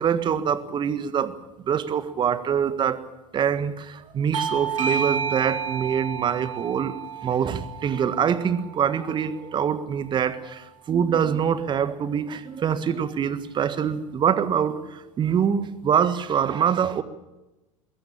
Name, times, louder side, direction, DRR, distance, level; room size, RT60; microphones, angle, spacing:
voice 1, 0.0-1.3 1.6-3.0 3.3-6.9 7.2-17.0, right 8 dB, 30° right, 14 dB, 1.6 m, -24 dB
Bell / Doorbell, 4.3-9.5, right 6 dB, 70° right, 2.0 m, -31 dB
21.5 x 16.5 x 8.8 m, 1.0 s
figure-of-eight pair, 80°, 17 cm